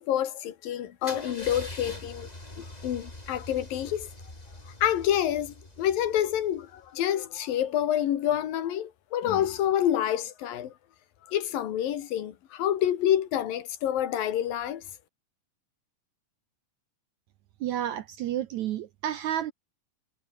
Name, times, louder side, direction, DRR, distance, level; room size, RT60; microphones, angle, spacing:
voice 1, 0.0-2.3 2.6-4.1 4.7-10.7 11.3-14.8, left 11 dB, 75° left, 3.4 m, -28 dB
Car / Engine starting / Idling, 1.0-6.9, left 1 dB, 10° left, 3.4 m, -43 dB
voice 2, 17.6-19.5, right 11 dB, 70° right, 1.9 m, -31 dB
omnidirectional pair, 4.2 m